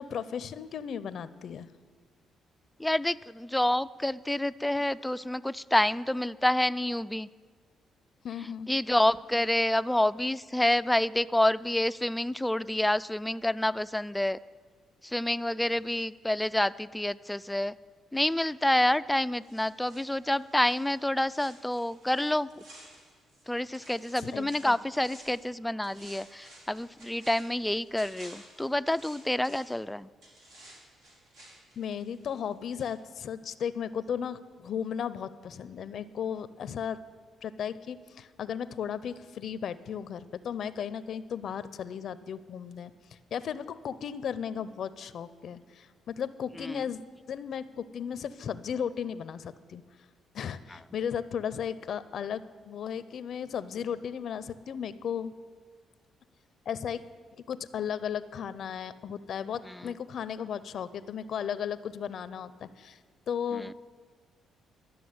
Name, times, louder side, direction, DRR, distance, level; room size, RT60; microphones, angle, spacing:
voice 1, 0.0-1.7 8.2-8.7 24.2-24.8 31.8-37.0 37.4-42.9 43.3-47.0 47.3-49.8 50.3-55.3 56.7-57.0 57.3-63.0 63.3-63.7, left 8 dB, 65° left, 15 dB, 0.5 m, -35 dB
voice 2, 2.8-7.3 8.7-14.4 15.0-17.8 18.1-22.5 23.5-30.1 46.6-46.8 59.7-59.9 63.5-63.7, left 1 dB, 5° left, 16 dB, 0.3 m, -28 dB
sound 1, 19.4-23.5 23.7-25.5 25.8-29.8 30.2-32.5 32.8-32.9, right 1 dB, 85° right, 4.6 m, -54 dB
12.5 x 6.9 x 9.4 m, 1.5 s
cardioid pair, 90°, 0 cm